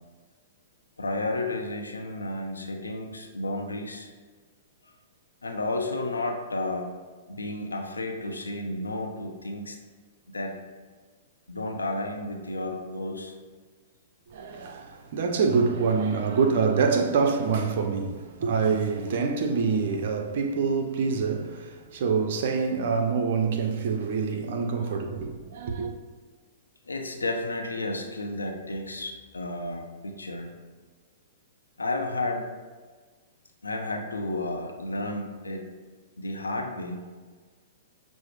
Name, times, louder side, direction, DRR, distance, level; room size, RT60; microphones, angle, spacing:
voice 1, 1.0-4.1 5.4-6.9 7.3-9.8 10.3-10.6 11.5-13.3 26.9-30.5 31.8-32.5 33.6-35.7 36.2-37.1, left 2 dB, 85° left, 0.5 m, -32 dB
voice 2, 14.3-25.9, right 5 dB, 55° right, 0.5 m, -26 dB
6.1 x 2.0 x 3.2 m
figure-of-eight pair, 110°, 0 cm